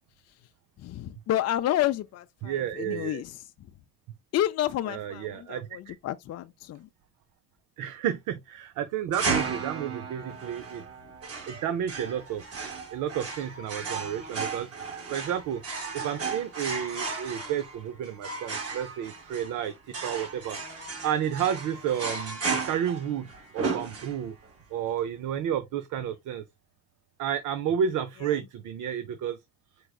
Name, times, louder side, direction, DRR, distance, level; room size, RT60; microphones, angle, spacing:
voice 1, 0.8-3.7 4.3-6.9 28.3-28.4, left 12 dB, 55° left, 0.5 m, -30 dB
voice 2, 2.4-3.2 4.9-6.0 7.8-10.8 11.5-12.4 12.9-14.7 15.1-15.6 15.9-19.7 20.0-20.6 21.0-23.3 23.5-24.3 24.7-26.4 27.2-29.4, right 9 dB, 85° right, 0.7 m, -31 dB
sound 1, 9.1-24.5, right 4 dB, 50° right, 1.9 m, -34 dB
4.9 x 4.6 x 2.3 m
cardioid pair, 90°, 30 cm